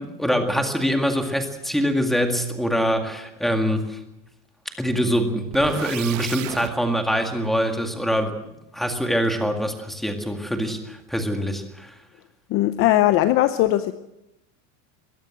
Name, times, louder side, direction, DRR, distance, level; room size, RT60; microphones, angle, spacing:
voice 1, 0.0-4.0 4.8-8.3 8.7-11.9, equal, ahead, 4 dB, 2.0 m, -24 dB
sound 1, 5.5-6.7, right 15 dB, 80° right, 1.4 m, -33 dB
voice 2, 12.5-13.9, left 14 dB, 35° left, 11 dB, 0.7 m, -19 dB
22.0 x 16.0 x 7.7 m, 0.90 s
supercardioid pair, 165°, 38 cm